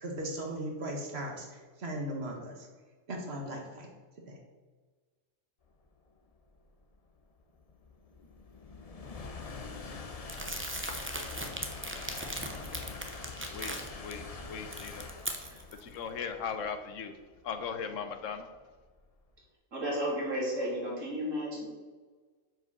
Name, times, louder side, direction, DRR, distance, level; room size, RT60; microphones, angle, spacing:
voice 1, 0.0-2.7 3.1-3.9 4.3-4.4, right 1 dB, 55° right, 1 dB, 1.7 m, -38 dB
sound 1, 6.0-19.3, left 4 dB, 35° left, 0.7 m, -45 dB
Crumpling crinkling, 10.3-14.1 14.5-15.8, right 1 dB, 15° right, 0.6 m, -39 dB
voice 2, 13.4-15.1 15.8-17.1 17.4-18.5, left 6 dB, 85° left, 8 dB, 1.2 m, -38 dB
voice 3, 19.7-21.7, equal, 85° right, -4 dB, 2.9 m, -33 dB
7.5 x 5.2 x 6.0 m, 1.4 s
omnidirectional pair, 1.3 m